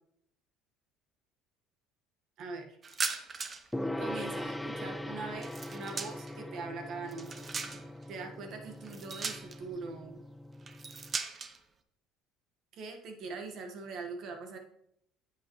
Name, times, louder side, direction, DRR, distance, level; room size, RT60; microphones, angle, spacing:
voice 1, 2.4-2.8 4.0-7.4 8.1-10.2 12.7-14.6, right 4 dB, 60° right, 4 dB, 1.5 m, -42 dB
sound 1, 2.8-3.7 4.0-6.4 6.9-8.0 8.8-9.8 10.6-11.6, right 5 dB, 35° right, 0.8 m, -39 dB
Gong, 3.7-11.2, left 1 dB, 5° left, 0.4 m, -41 dB
8.4 x 8.1 x 3.2 m, 0.71 s
supercardioid pair, 80°, 0 cm